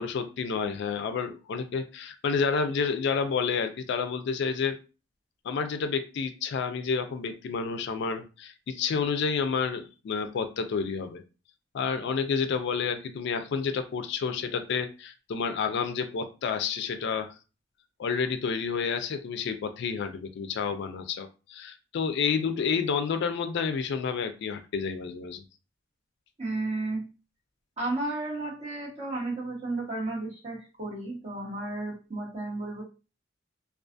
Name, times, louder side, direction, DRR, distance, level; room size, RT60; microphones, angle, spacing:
voice 1, 0.0-4.8 5.5-11.2 11.7-17.3 18.0-25.4, left 5 dB, 65° left, 8 dB, 0.3 m, -30 dB
voice 2, 26.4-27.0 27.8-32.8, right 2 dB, 35° right, -5 dB, 1.1 m, -33 dB
2.3 x 2.3 x 2.5 m, 0.32 s
head